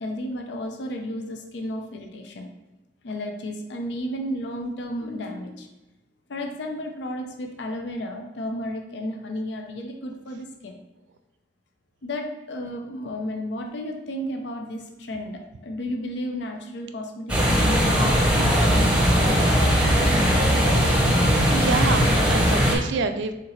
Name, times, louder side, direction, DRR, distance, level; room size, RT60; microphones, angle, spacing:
voice 1, 0.0-2.5 3.0-5.7 6.3-10.8 12.0-20.3, left 1 dB, 75° left, 3 dB, 0.5 m, -33 dB
sound 1, 17.3-22.8, equal, 5° right, 0.7 m, -19 dB
voice 2, 21.5-23.3, right 4 dB, 80° right, 8 dB, 0.4 m, -26 dB
4.4 x 3.7 x 3.1 m, 1.0 s
head